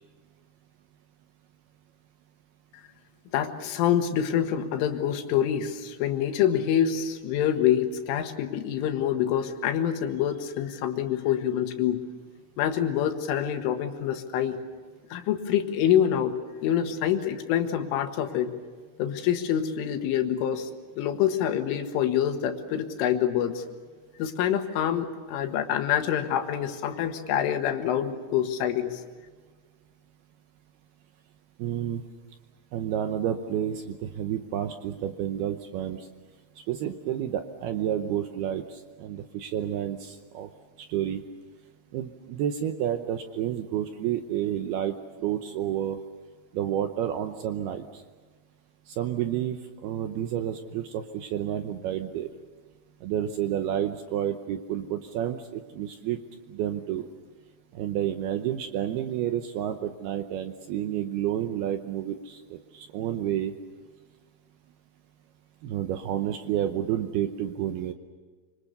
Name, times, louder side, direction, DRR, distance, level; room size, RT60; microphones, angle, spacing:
voice 1, 3.3-12.0 12.6-14.6 15.1-18.5 19.0-20.7 21.0-23.6 24.2-29.0, left 10 dB, 85° left, 6 dB, 4.1 m, -26 dB
voice 2, 31.6-32.0 32.7-36.1 36.7-40.5 40.9-41.2 41.9-46.0 46.5-48.0 48.9-52.3 53.0-56.2 56.5-57.1 57.7-63.5 65.6-67.9, right 10 dB, 80° right, 7 dB, 2.4 m, -30 dB
25.5 x 25.5 x 6.8 m, 1.4 s
omnidirectional pair, 5.5 m